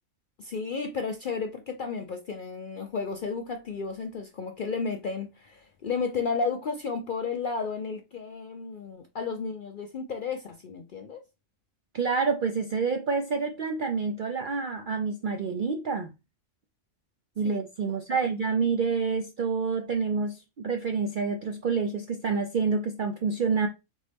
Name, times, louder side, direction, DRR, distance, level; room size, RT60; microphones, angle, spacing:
voice 1, 0.4-11.2 17.4-17.6 17.9-18.3, left 5 dB, 60° left, 0.5 m, -33 dB
voice 2, 11.9-16.1 17.4-23.7, right 5 dB, 65° right, 0.5 m, -28 dB
4.0 x 3.6 x 3.3 m
omnidirectional pair, 1.4 m